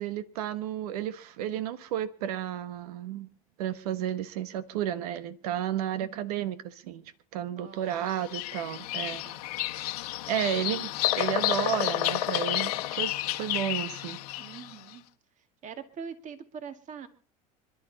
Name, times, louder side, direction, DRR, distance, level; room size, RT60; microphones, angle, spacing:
voice 1, 0.0-3.3 3.6-7.0 7.3-9.2 10.3-14.2, right 10 dB, 85° right, 1.3 m, -32 dB
voice 2, 6.0-6.3 7.5-8.0 9.1-9.4 14.4-15.0 15.6-17.1, right 6 dB, 40° right, 2.1 m, -43 dB
Bird vocalization bird call bird song, 8.1-14.7, left 15 dB, 90° left, 1.4 m, -30 dB
26.0 x 11.5 x 4.1 m
supercardioid pair, 105°, 19 cm